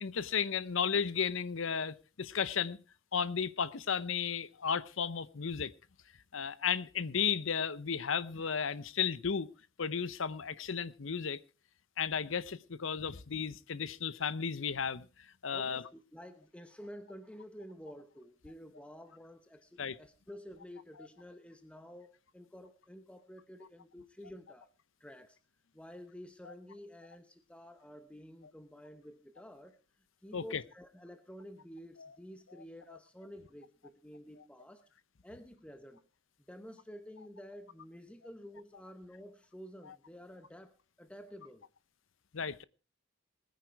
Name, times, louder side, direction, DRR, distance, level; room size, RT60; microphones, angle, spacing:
voice 1, 0.0-2.8 3.1-5.7 6.3-9.5 9.8-11.4 12.0-15.1 15.4-15.8 19.8-20.0 30.3-30.6 32.0-32.1 42.3-42.6, left 6 dB, 70° left, 0.8 m, -34 dB
voice 2, 15.5-24.7 25.0-25.4 25.7-29.8 30.2-34.8 35.2-36.0 36.5-41.6, equal, 5° left, 0.9 m, -51 dB
20.5 x 9.5 x 4.6 m
head